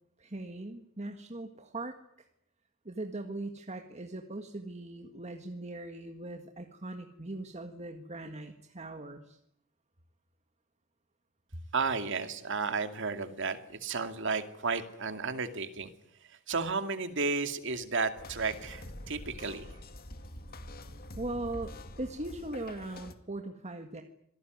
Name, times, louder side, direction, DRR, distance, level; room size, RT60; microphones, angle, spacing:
voice 1, 0.2-2.0 2.9-9.4 21.2-24.0, right 2 dB, 35° right, 5 dB, 1.8 m, -40 dB
voice 2, 11.7-15.9 16.2-19.7, right 4 dB, 65° right, 8 dB, 2.4 m, -33 dB
sound 1, 18.1-23.1, left 1 dB, 50° left, 2.2 m, -46 dB
26.5 x 19.0 x 9.4 m, 0.75 s
head